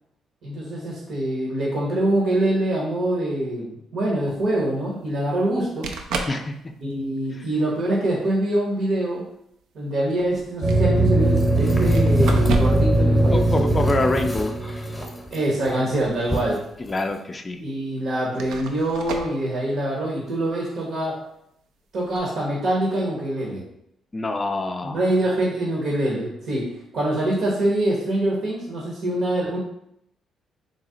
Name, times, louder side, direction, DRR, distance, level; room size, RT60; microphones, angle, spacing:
voice 1, 0.4-5.9 6.8-9.2 9.7-13.7 15.3-16.6 17.6-21.2 21.9-23.6 24.8-29.6, right 1 dB, 70° right, -3 dB, 0.9 m, -24 dB
sound 1, 4.3-4.4 5.5-5.6 5.8-6.4 6.9-7.2 8.2-8.3 10.0-10.8 11.9-13.0 13.3-13.4 15.6-16.4 16.7-16.8 17.6-17.7 18.3-19.4 22.0-22.2, right 3 dB, 90° right, 0.4 m, -31 dB
sound 2, 10.6-15.4, right 1 dB, 40° right, 0.7 m, -20 dB
sound 3, 11.3-17.2, equal, 10° left, 0.7 m, -31 dB
voice 2, 13.3-14.5 16.9-17.6 24.1-25.0, left 2 dB, 25° left, 5 dB, 0.3 m, -25 dB
3.9 x 2.0 x 3.7 m, 0.76 s
cardioid pair, 90°, 0 cm